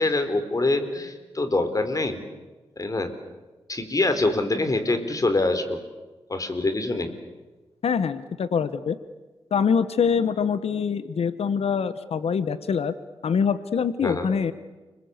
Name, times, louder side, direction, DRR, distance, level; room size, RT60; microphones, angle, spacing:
voice 1, 0.0-2.2 2.8-3.1 3.7-5.8 6.3-7.1 14.0-14.3, left 2 dB, 35° left, 9 dB, 3.9 m, -25 dB
voice 2, 7.8-9.0 9.5-12.9 13.2-14.5, left 6 dB, 75° left, 14 dB, 1.2 m, -24 dB
30.0 x 21.0 x 8.1 m, 1.2 s
cardioid pair, 75°, 10 cm